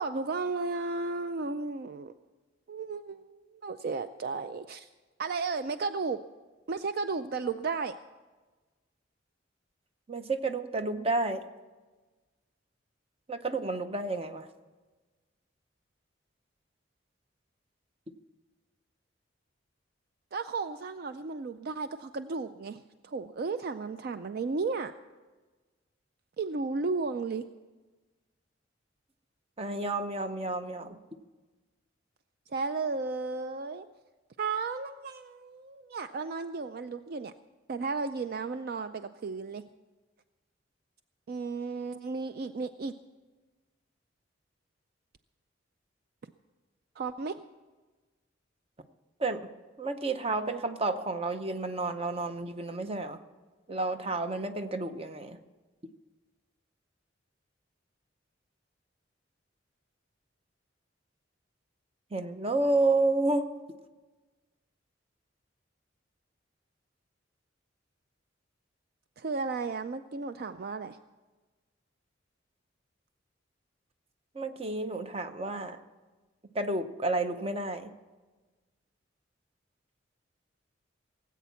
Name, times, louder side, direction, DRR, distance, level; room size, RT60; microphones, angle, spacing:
voice 1, 0.0-2.1 2.7-4.9 5.2-6.2 6.7-8.0 20.3-24.9 26.4-27.4 32.5-33.9 34.4-37.3 37.7-39.6 41.3-42.9 47.0-47.4 69.2-71.0, right 4 dB, 50° right, 10 dB, 0.4 m, -34 dB
voice 2, 10.1-11.4 13.3-14.5 29.6-31.0 49.2-49.4 49.8-53.2 53.7-55.4 62.1-63.5 74.3-75.8 76.5-77.9, right 2 dB, 30° right, 8 dB, 0.8 m, -30 dB
18.0 x 8.4 x 7.0 m, 1.3 s
head